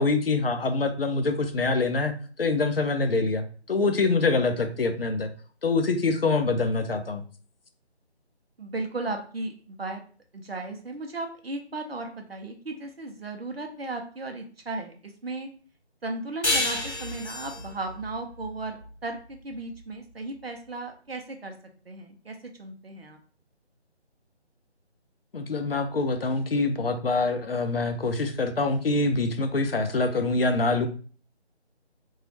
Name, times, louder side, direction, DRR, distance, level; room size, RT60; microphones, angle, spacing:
voice 1, 0.0-2.1 2.4-5.3 5.6-7.2 25.3-30.9, left 3 dB, 60° left, 7 dB, 0.5 m, -25 dB
voice 2, 8.6-10.0 10.3-15.5 16.0-21.5 21.9-23.2, right 2 dB, 60° right, 4 dB, 0.5 m, -36 dB
sound 1, 16.4-19.6, left 2 dB, 90° left, 0.8 m, -30 dB
2.9 x 2.3 x 2.6 m, 0.41 s
figure-of-eight pair, 160°, 34 cm